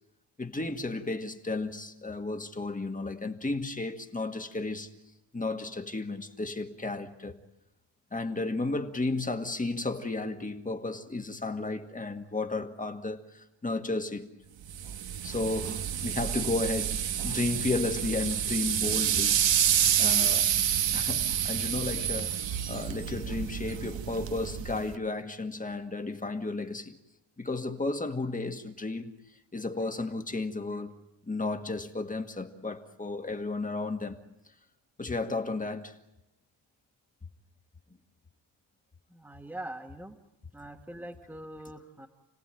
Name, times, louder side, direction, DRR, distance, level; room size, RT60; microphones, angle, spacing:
voice 1, 0.4-4.9 5.3-7.4 8.1-14.3 15.2-19.4 20.0-20.5 20.9-22.4 22.7-27.0 27.4-29.2 29.5-30.9 31.3-34.2 35.0-36.0, left 3 dB, 15° left, 1.8 m, -33 dB
sound 1, 14.7-25.0, right 9 dB, 65° right, 1.3 m, -28 dB
voice 2, 39.1-40.2 40.5-42.1, right 1 dB, 5° right, 1.6 m, -43 dB
29.5 x 18.0 x 9.0 m
wide cardioid pair, 140°, 49 cm